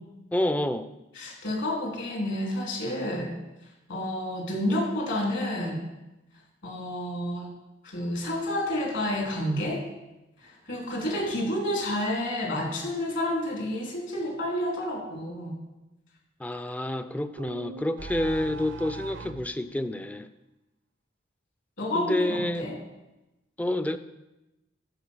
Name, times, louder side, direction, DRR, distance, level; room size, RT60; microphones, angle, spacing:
voice 1, 0.3-0.9 16.4-20.3 21.9-22.7 23.6-24.0, left 1 dB, 5° left, 11 dB, 0.4 m, -28 dB
voice 2, 1.1-3.3 3.9-5.8 6.6-7.5 7.8-9.8 10.4-15.5 21.8-22.8, left 1 dB, 60° left, -2 dB, 3.2 m, -30 dB
sound 1, 17.4-19.5, right 4 dB, 65° right, 0.5 m, -39 dB
12.5 x 4.6 x 6.3 m, 0.99 s
head